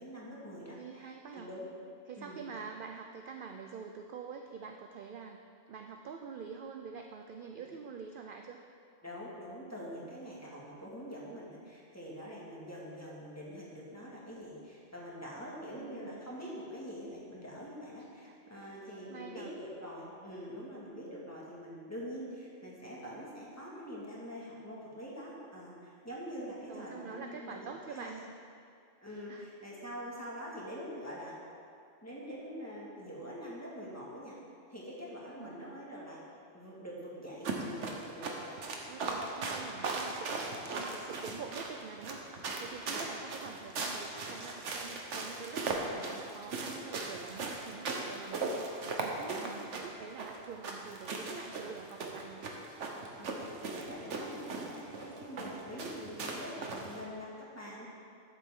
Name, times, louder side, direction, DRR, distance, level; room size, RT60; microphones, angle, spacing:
voice 1, 0.0-1.7 2.2-2.4 9.0-28.3 29.0-31.4 32.0-34.4 34.7-36.2 36.5-38.6 42.9-43.0 49.3-49.8 52.0-52.1 53.1-57.9, equal, 15° left, -6 dB, 1.9 m, -45 dB
voice 2, 0.7-1.5 2.1-5.4 5.7-8.6 15.8-16.3 18.2-18.3 19.1-19.5 26.7-28.2 29.3-29.5 35.4-35.7 38.9-42.2 42.6-52.5, right 6 dB, 60° right, 3 dB, 0.6 m, -46 dB
sound 1, 37.4-57.0, right 3 dB, 75° right, 1.3 m, -38 dB
12.5 x 7.5 x 3.7 m, 2.4 s
omnidirectional pair, 1.2 m